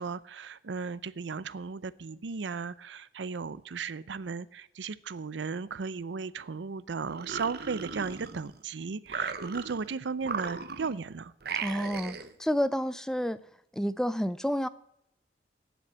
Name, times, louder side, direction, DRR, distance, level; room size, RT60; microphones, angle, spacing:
voice 1, 0.0-11.3, right 5 dB, 90° right, 18 dB, 0.5 m, -36 dB
sound 1, 7.1-8.6 9.1-9.9 10.2-11.0 11.4-12.3, right 5 dB, 60° right, 1.0 m, -36 dB
voice 2, 11.6-12.1 12.4-13.4 13.7-14.7, equal, 5° left, 16 dB, 0.4 m, -29 dB
9.5 x 7.7 x 8.5 m, 0.74 s
head